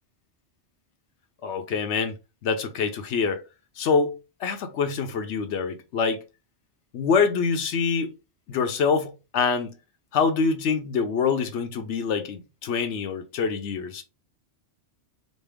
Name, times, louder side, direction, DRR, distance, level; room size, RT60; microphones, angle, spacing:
voice 1, 1.4-2.1 2.4-3.4 3.8-6.2 6.9-8.1 8.5-9.7 10.1-14.0, left 5 dB, 85° left, 1.0 m, -25 dB
4.2 x 2.0 x 3.4 m
omnidirectional pair, 1.1 m